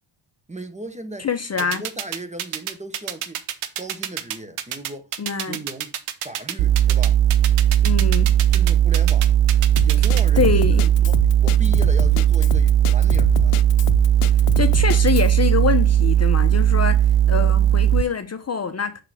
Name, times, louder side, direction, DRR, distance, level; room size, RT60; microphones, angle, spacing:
voice 1, 0.5-1.3 1.6-3.4 3.8-5.1 5.5-6.0 6.2-7.2 8.5-9.3 9.8-13.6, right 2 dB, 15° right, 1.1 m, -37 dB
voice 2, 1.2-1.8 5.2-5.6 7.8-8.3 10.3-10.9 14.6-19.0, left 6 dB, 30° left, 0.7 m, -24 dB
sound 1, 1.6-10.2, right 11 dB, 90° right, 1.0 m, -28 dB
sound 2, 6.6-18.0, right 11 dB, 60° right, 0.5 m, -17 dB
Drum kit, 9.8-15.3, left 13 dB, 85° left, 0.6 m, -29 dB
6.6 x 3.8 x 6.2 m
cardioid pair, 80°, 50 cm